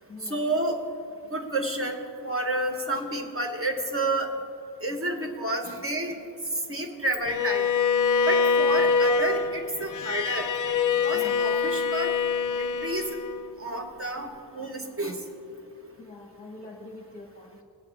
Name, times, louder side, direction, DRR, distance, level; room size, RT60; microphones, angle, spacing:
voice 1, 0.3-0.8 1.3-4.3 4.8-6.2 6.7-7.7 8.3-10.5 11.0-12.1 12.6-13.0 13.6-14.3 14.5-15.1, right 1 dB, 30° right, 3 dB, 1.2 m, -30 dB
Bowed string instrument, 7.3-13.5, left 5 dB, 45° left, 0.5 m, -25 dB
voice 2, 16.0-17.6, left 2 dB, 20° left, -2 dB, 1.1 m, -44 dB
19.5 x 8.2 x 3.4 m, 2.6 s
wide cardioid pair, 125°, 44 cm